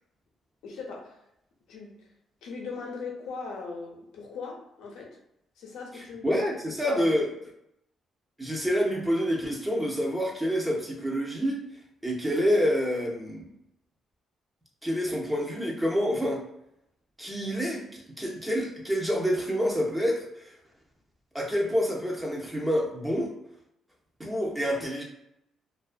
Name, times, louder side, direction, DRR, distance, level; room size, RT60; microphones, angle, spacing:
voice 1, 0.6-1.2 1.7-2.0 2.4-5.2 5.6-6.5 6.8-7.0, left 4 dB, 85° left, 0 dB, 0.6 m, -39 dB
voice 2, 5.9-7.3 8.4-11.6 12.0-13.5 14.8-16.4 17.2-20.5 21.3-23.3 24.2-25.0, equal, 10° right, -2 dB, 0.5 m, -27 dB
2.3 x 2.2 x 2.4 m, 0.79 s
cardioid pair, 90°, 0 cm